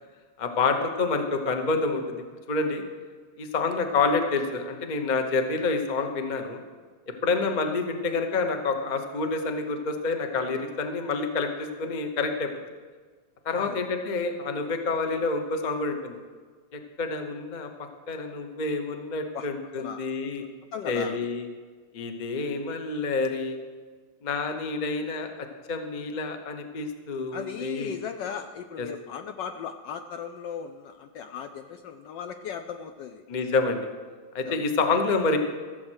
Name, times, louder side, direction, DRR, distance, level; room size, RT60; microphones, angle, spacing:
voice 1, 0.4-2.8 3.4-6.6 7.2-12.5 13.4-16.2 16.7-17.7 18.1-20.4 20.9-21.5 21.9-23.6 24.2-27.9 28.8-28.9 33.3-33.9 34.3-35.4, left 3 dB, 50° left, 5 dB, 0.5 m, -28 dB
voice 2, 13.5-13.8 19.3-19.5 19.8-20.2 20.7-21.2 27.3-33.2 34.4-34.6, left 7 dB, 75° left, 7 dB, 1.0 m, -37 dB
15.0 x 7.6 x 6.3 m, 1.5 s
omnidirectional pair, 2.4 m